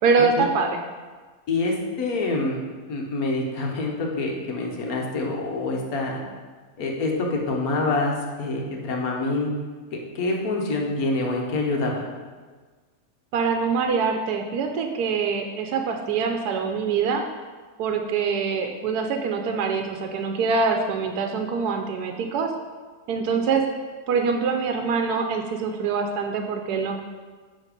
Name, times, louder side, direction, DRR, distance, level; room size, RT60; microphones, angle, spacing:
voice 1, 0.0-0.8 13.3-17.2 17.8-22.5 23.1-23.7 24.1-27.0, right 5 dB, 90° right, 4 dB, 1.2 m, -24 dB
voice 2, 1.5-2.6 2.9-6.2 6.8-9.5 10.1-12.0, left 2 dB, 70° left, 0 dB, 1.5 m, -26 dB
9.1 x 3.3 x 5.2 m, 1.4 s
omnidirectional pair, 1.6 m